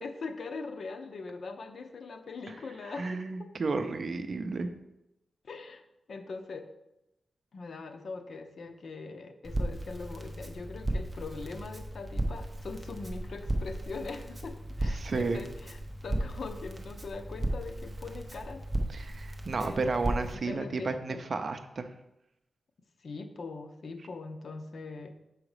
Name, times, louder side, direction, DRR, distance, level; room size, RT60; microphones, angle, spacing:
voice 1, 0.0-3.5 5.4-5.8 6.1-6.7 7.5-18.6 19.6-21.2 23.0-25.1, left 4 dB, 60° left, 7 dB, 0.6 m, -41 dB
voice 2, 2.8-4.7 14.9-15.4 18.9-21.9, right 3 dB, 50° right, 8 dB, 0.6 m, -32 dB
Crackle, 9.4-20.3, right 1 dB, 20° right, 0.8 m, -35 dB
6.2 x 4.9 x 4.9 m, 0.89 s
wide cardioid pair, 140°, 0 cm